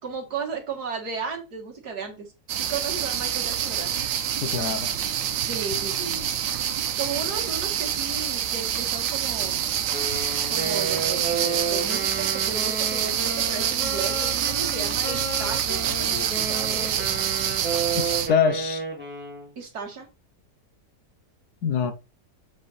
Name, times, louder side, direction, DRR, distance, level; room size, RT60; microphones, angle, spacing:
voice 1, 0.0-3.9 5.5-6.4 7.0-9.6 10.5-17.0 19.6-20.1, right 5 dB, 60° right, 2.3 m, -35 dB
sound 1, 2.5-18.3, right 10 dB, 85° right, 1.5 m, -26 dB
voice 2, 4.4-5.1 17.9-18.8 21.6-21.9, left 6 dB, 65° left, 1.4 m, -25 dB
Wind instrument woodwind instrument, 9.9-19.5, right 3 dB, 5° right, 1.7 m, -32 dB
7.5 x 3.9 x 4.2 m
omnidirectional pair, 1.9 m